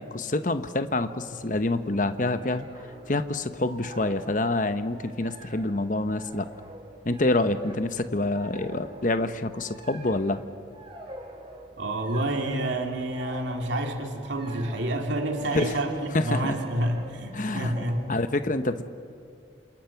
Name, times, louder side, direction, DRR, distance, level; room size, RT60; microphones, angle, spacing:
voice 1, 0.0-2.7 3.1-6.5 7.0-10.4 15.5-15.7 16.1-16.6 17.3-17.7 18.1-18.8, left 2 dB, 45° left, 10 dB, 0.9 m, -27 dB
sound 1, 1.2-18.3, right 1 dB, 30° right, 3.1 m, -47 dB
voice 2, 11.8-18.1, right 1 dB, 80° right, 3 dB, 2.7 m, -28 dB
28.0 x 27.0 x 5.9 m, 2.4 s
head